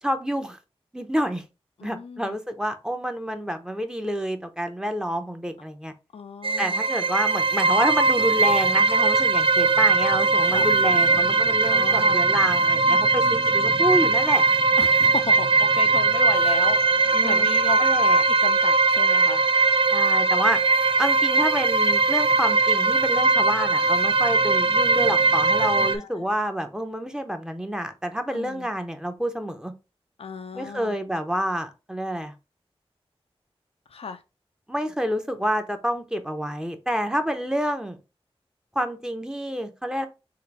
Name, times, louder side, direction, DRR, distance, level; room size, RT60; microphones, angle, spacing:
voice 1, 0.0-0.6 0.9-1.4 1.8-5.9 6.6-14.4 17.1-17.5 17.8-18.2 19.9-20.6 21.0-29.7 30.5-32.3 34.7-38.0 38.7-40.1, equal, 5° right, 0.8 m, -28 dB
voice 2, 1.8-2.4 6.1-6.8 10.4-10.7 11.7-12.2 14.8-16.8 17.2-17.8 18.3-19.4 25.6-26.3 28.3-28.7 30.2-31.0 33.9-34.2, left 5 dB, 75° left, 0.5 m, -34 dB
sound 1, 6.4-26.0, right 3 dB, 60° right, 0.5 m, -20 dB
3.8 x 2.5 x 4.5 m
wide cardioid pair, 80°, 10 cm